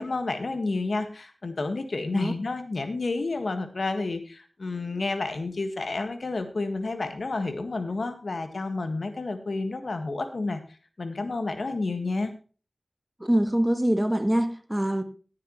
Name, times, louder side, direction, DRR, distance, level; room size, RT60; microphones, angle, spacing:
voice 1, 0.0-10.6 11.0-12.3, left 3 dB, 75° left, 1.7 m, -30 dB
voice 2, 13.2-15.0, right 1 dB, 10° right, 1.5 m, -24 dB
15.0 x 9.6 x 3.1 m
wide cardioid pair, 60°, 0 cm